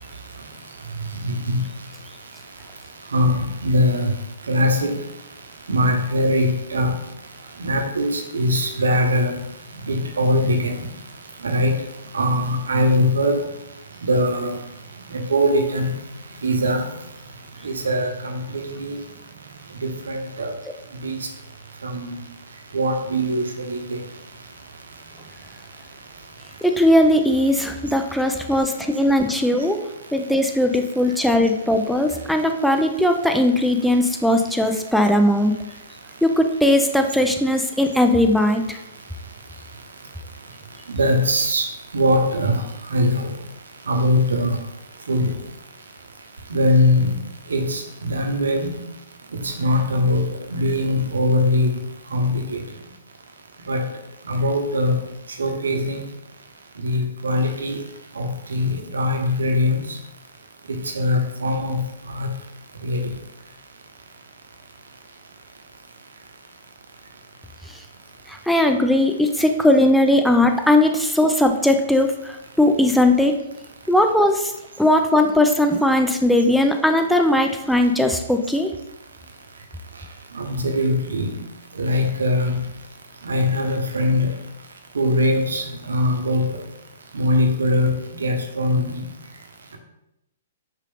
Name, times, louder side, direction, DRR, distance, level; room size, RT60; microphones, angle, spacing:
voice 1, 1.2-1.6 3.1-4.1 4.5-5.0 5.7-7.0 7.6-9.3 9.9-10.7 11.4-11.7 12.1-13.4 14.1-14.5 15.1-15.9 16.4-16.8 17.6-19.0 19.8-20.5 21.0-21.2 21.8-22.2 22.7-24.0 40.9-41.7 41.9-42.6 42.9-43.3 43.9-44.5 45.1-45.3 46.5-47.1 47.5-48.8 49.4-50.2 50.5-51.7 52.1-52.6 53.7-53.8 54.3-55.0 55.4-56.0 56.8-57.8 58.2-59.8 60.7-61.8 62.1-62.3 62.8-63.1 80.3-81.4 81.8-82.6 83.2-84.3 84.9-86.5 87.1-89.0, left 1 dB, 75° right, 3 dB, 0.8 m, -21 dB
voice 2, 26.6-29.8 30.1-35.5 36.2-38.8 68.3-73.3 73.9-74.5 74.8-78.7, left 1 dB, ahead, 4 dB, 0.5 m, -18 dB
5.4 x 2.5 x 3.5 m, 0.87 s
figure-of-eight pair, 120°, 0 cm